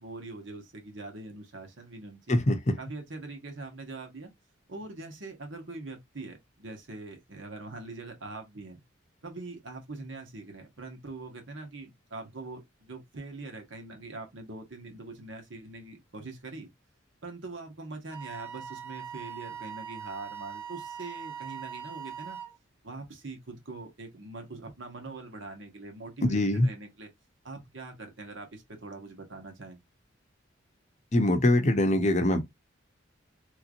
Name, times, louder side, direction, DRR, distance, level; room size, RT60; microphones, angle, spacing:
voice 1, 0.0-2.4 2.8-4.3 4.7-8.8 9.2-16.7 17.2-22.4 22.8-27.1 27.4-29.8, right 3 dB, 70° right, 1.3 m, -43 dB
voice 2, 2.3-2.8 26.2-26.7 31.1-32.4, left 1 dB, 35° left, 0.6 m, -23 dB
Wind instrument woodwind instrument, 18.1-22.6, right 8 dB, 10° right, 1.0 m, -41 dB
3.3 x 2.9 x 2.4 m
head